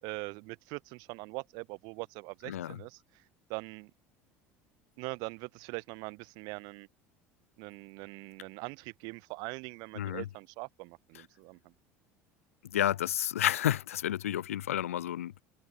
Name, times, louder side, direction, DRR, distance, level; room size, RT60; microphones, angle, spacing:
voice 1, 0.0-3.2 3.5-3.9 5.0-6.9 7.6-11.7, right 29 dB, 65° right, 3.9 m, -42 dB
voice 2, 2.5-2.8 10.0-10.3 12.6-15.4, left 11 dB, 90° left, 1.8 m, -31 dB
hypercardioid pair, 80°, 7 cm